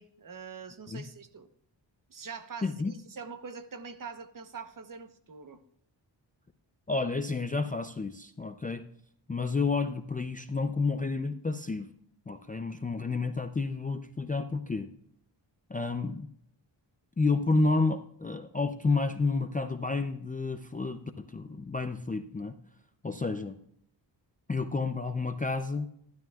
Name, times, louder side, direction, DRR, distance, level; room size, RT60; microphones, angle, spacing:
voice 1, 0.0-1.5 2.1-5.6, right 5 dB, 45° right, 0.9 m, -44 dB
voice 2, 2.6-2.9 6.9-8.9 9.3-11.9 12.3-14.9 15.7-16.3 17.2-22.6 23.0-23.6 24.5-25.9, left 3 dB, 20° left, 0.4 m, -30 dB
12.5 x 11.0 x 2.3 m
wide cardioid pair, 130°, 45 cm